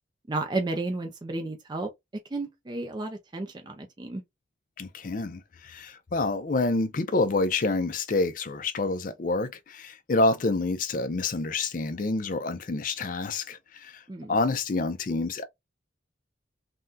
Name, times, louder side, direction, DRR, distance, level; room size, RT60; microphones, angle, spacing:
voice 1, 0.3-1.9 2.3-4.2 14.1-14.3, right 2 dB, 25° right, 0.4 m, -32 dB
voice 2, 4.8-14.0 14.3-15.4, left 3 dB, 45° left, 0.4 m, -28 dB
3.6 x 2.2 x 2.5 m
head